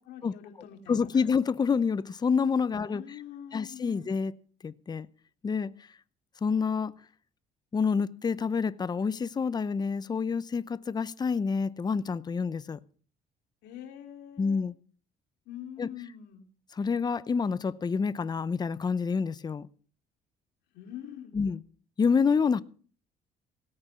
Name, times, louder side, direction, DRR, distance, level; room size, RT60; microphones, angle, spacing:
voice 1, 0.1-1.3 2.8-4.1 13.6-14.6 15.5-16.5 20.7-21.4, left 10 dB, 80° left, 2.6 m, -45 dB
voice 2, 0.9-3.0 3.5-4.3 4.6-5.1 5.4-5.7 6.4-6.9 7.7-12.8 14.4-14.7 15.8-15.9 16.8-19.7 21.3-21.6 22.0-22.6, left 5 dB, 25° left, 0.7 m, -27 dB
17.5 x 8.8 x 6.8 m
cardioid pair, 110°, 17 cm